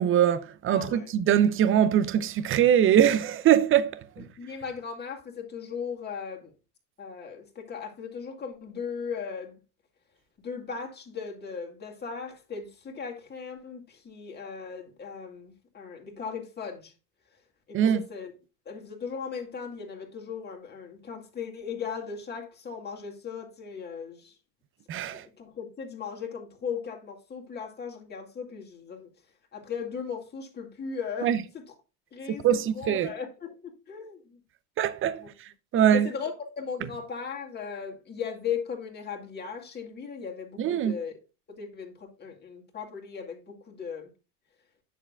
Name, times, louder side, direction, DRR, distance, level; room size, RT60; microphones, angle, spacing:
voice 1, 0.0-4.2 17.7-18.0 24.9-25.2 31.2-31.4 32.4-33.1 34.8-35.2 35.7-36.1 40.6-40.9, right 10 dB, 25° right, 0.7 m, -22 dB
voice 2, 0.7-1.1 4.2-6.5 7.0-9.6 10.4-16.9 17.7-18.3 18.7-24.3 25.1-29.1 29.5-31.7 32.1-32.5 32.7-34.4 35.2-35.3 35.9-41.1 41.5-44.1, left 6 dB, 20° left, 2.2 m, -37 dB
10.0 x 6.7 x 2.4 m
figure-of-eight pair, 80°, 48 cm